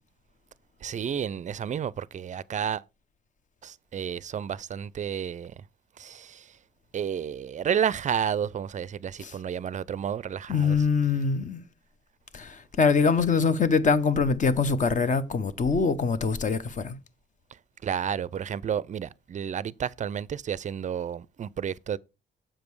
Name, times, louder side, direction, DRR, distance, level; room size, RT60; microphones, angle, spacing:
voice 1, 0.8-2.8 3.6-5.5 6.0-6.4 6.9-10.8 17.8-22.0, right 8 dB, 40° right, 0.4 m, -31 dB
voice 2, 10.5-11.6 12.3-17.0, left 5 dB, 40° left, 0.9 m, -24 dB
7.4 x 5.1 x 4.7 m
cardioid pair, 90°, 20 cm